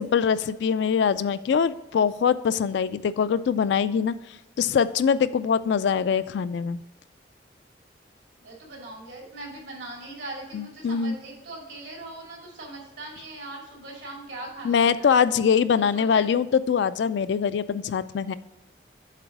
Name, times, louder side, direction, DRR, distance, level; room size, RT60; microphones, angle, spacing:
voice 1, 0.0-4.2 4.6-6.8 10.5-11.2 14.6-18.3, left 6 dB, 75° left, 14 dB, 0.3 m, -23 dB
voice 2, 8.4-15.2 15.8-16.3, right 2 dB, 90° right, -2 dB, 2.6 m, -40 dB
7.5 x 3.9 x 6.0 m, 0.97 s
head